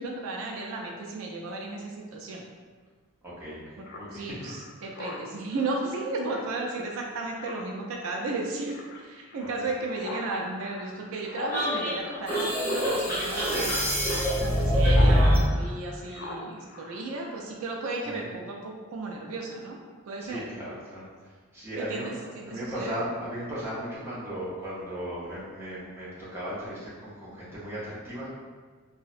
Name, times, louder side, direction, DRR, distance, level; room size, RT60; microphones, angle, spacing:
voice 1, 0.0-2.4 3.8-14.0 14.4-19.8 20.1-20.4 21.8-23.0, right 2 dB, 80° right, 0 dB, 0.3 m, -34 dB
voice 2, 3.2-4.5 9.4-9.5 18.0-18.3 20.2-21.1 21.5-28.3, equal, 10° right, -10 dB, 0.6 m, -37 dB
Speech synthesizer, 3.8-15.2 15.5-17.7, left 2 dB, 50° left, 0.3 m, -43 dB
sound 1, 11.5-15.5, equal, 10° left, 1.2 m, -23 dB
2.6 x 2.0 x 2.4 m, 1.5 s
head